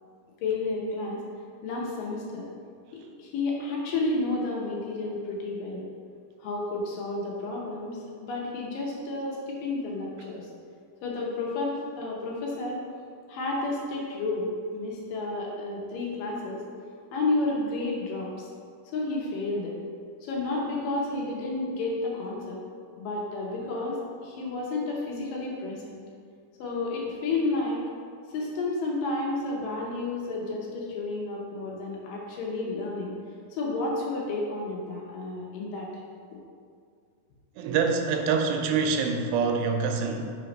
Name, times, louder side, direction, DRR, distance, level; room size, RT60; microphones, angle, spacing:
voice 1, 0.4-1.2 1.6-2.5 2.9-5.8 6.4-10.5 11.0-12.8 13.3-16.6 17.1-18.3 18.9-19.7 20.2-22.6 23.0-24.0 24.2-26.0 26.6-27.9 28.3-33.1 33.5-35.9, left 2 dB, 75° left, -3 dB, 2.3 m, -31 dB
voice 2, 37.6-40.3, right 5 dB, 85° right, 4 dB, 2.4 m, -25 dB
5.0 x 4.5 x 5.1 m, 2.2 s
omnidirectional pair, 4.3 m